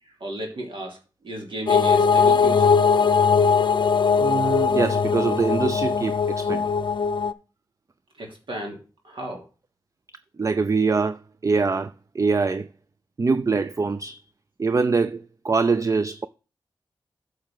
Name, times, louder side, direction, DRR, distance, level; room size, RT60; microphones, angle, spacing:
voice 1, 0.0-2.8 8.2-9.5, right 1 dB, 85° right, 3.0 m, -34 dB
sound 1, 1.7-7.3, left 5 dB, 70° left, 0.6 m, -20 dB
voice 2, 4.2-6.7 10.4-12.7 13.2-14.2 14.6-16.3, right 4 dB, 40° right, 0.5 m, -24 dB
9.2 x 6.6 x 3.7 m
cardioid pair, 55°, 8 cm